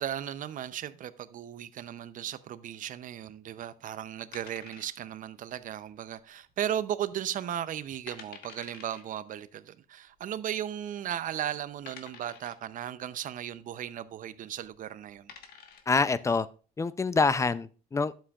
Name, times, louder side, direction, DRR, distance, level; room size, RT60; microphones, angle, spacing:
voice 1, 0.0-15.3, right 10 dB, 50° right, 0.6 m, -36 dB
sound 1, 4.3-5.3 5.5-5.6 6.3-6.7 7.0-7.1 7.7-7.8 8.1-9.0 10.1-10.2 10.9-11.0 11.9-12.7 14.5-14.7 15.1-16.0, left 6 dB, 65° left, 1.3 m, -49 dB
voice 2, 15.9-16.5 16.8-18.1, left 4 dB, 20° left, 0.4 m, -26 dB
11.5 x 7.4 x 2.4 m
cardioid pair, 110°, 17 cm